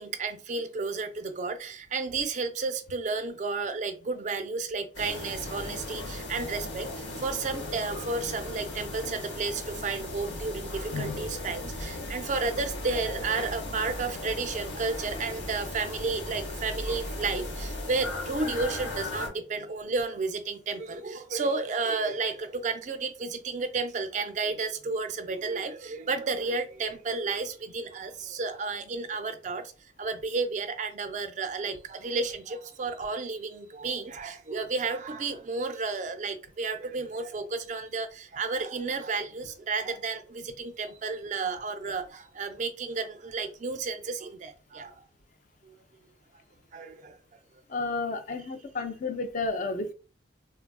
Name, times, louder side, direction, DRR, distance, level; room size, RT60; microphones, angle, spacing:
voice 1, 0.0-29.7 30.0-45.0 45.6-45.7 46.7-47.2 48.4-48.5, right 4 dB, 40° right, 0.3 m, -32 dB
sound 1, 4.9-19.3, left 2 dB, 65° left, 0.8 m, -37 dB
voice 2, 47.7-49.9, left 3 dB, 40° left, 0.4 m, -31 dB
3.3 x 2.3 x 2.2 m
head